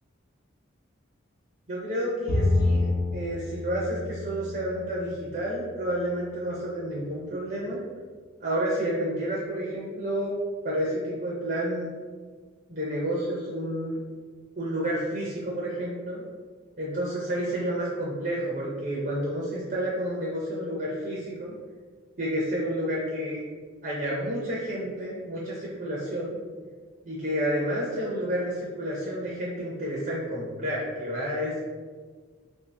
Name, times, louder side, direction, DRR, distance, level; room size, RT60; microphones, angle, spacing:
voice 1, 1.7-7.8 8.4-10.3 10.6-11.9 12.7-14.0 14.6-16.2 16.8-21.5 22.2-23.4 23.8-26.4 27.1-31.6, equal, 40° right, -5 dB, 0.6 m, -30 dB
Bowed string instrument, 2.3-5.7, left 2 dB, 70° left, 0.7 m, -28 dB
3.0 x 2.7 x 3.2 m, 1.5 s
head